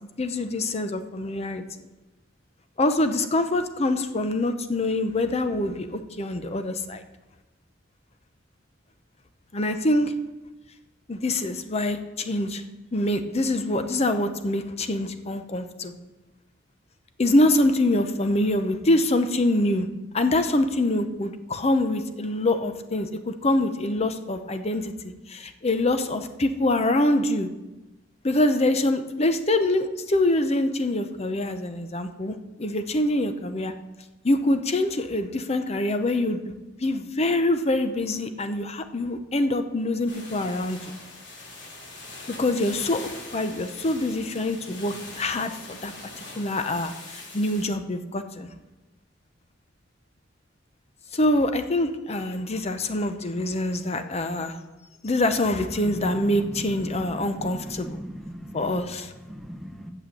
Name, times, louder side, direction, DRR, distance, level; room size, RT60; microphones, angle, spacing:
voice 1, 0.2-1.6 2.8-7.0 9.5-10.1 11.1-12.6 12.9-16.0 17.2-19.9 20.1-27.5 28.2-33.7 34.2-36.4 36.8-41.0 42.4-45.9 46.4-46.9 47.3-48.5 51.1-54.6 55.0-58.0 58.5-59.1, left 1 dB, 35° left, 9 dB, 0.7 m, -25 dB
sound 1, 40.1-47.7, left 2 dB, 65° left, 3.0 m, -42 dB
voice 2, 55.8-58.9 59.3-59.9, equal, ahead, 4 dB, 1.0 m, -37 dB
8.6 x 6.9 x 7.6 m, 1.1 s
head